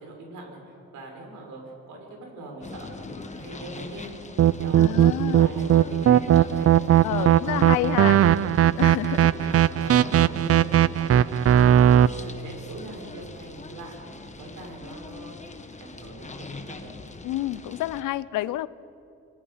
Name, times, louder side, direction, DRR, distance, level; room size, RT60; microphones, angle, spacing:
voice 1, 0.0-1.6 1.9-8.8 9.2-15.5 15.8-16.9, right 2 dB, 80° right, 0 dB, 6.6 m, -42 dB
sound 1, 2.6-18.0, left 3 dB, 25° left, 1.5 m, -42 dB
sound 2, 4.4-12.1, right 10 dB, 50° right, 0.6 m, -18 dB
voice 2, 4.7-5.5 7.0-8.2 8.8-9.2 17.2-18.7, left 15 dB, 90° left, 19 dB, 0.7 m, -29 dB
27.5 x 19.0 x 5.8 m, 2.6 s
cardioid pair, 90°, 30 cm